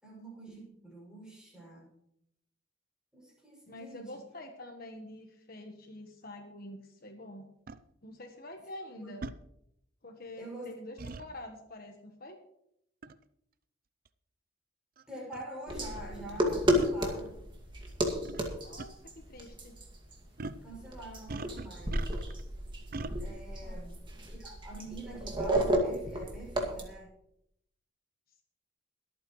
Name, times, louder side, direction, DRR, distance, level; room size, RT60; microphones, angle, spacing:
voice 1, 0.0-1.9 3.1-4.2 9.0-9.2 10.4-10.7 15.1-17.4 20.6-22.0 23.2-24.0 24.3-27.1, right 1 dB, 5° right, -4 dB, 6.4 m, -46 dB
voice 2, 3.7-7.5 8.0-9.2 10.0-12.4 18.6-19.8 23.6-23.8, left 1 dB, 50° left, 4 dB, 1.3 m, -47 dB
sound 1, 7.7-7.8 9.2-9.4 11.0-11.3 13.0-13.2 14.1-14.2 15.0-15.1 15.3-15.5 16.8-16.9 18.3-18.5 18.8-18.9 20.4-20.7 21.3-22.4 22.9-23.1, right 3 dB, 50° right, 0.5 m, -40 dB
sound 2, 15.7-26.8, right 1 dB, 25° right, 2.1 m, -33 dB
23.0 x 9.0 x 3.2 m, 0.78 s
head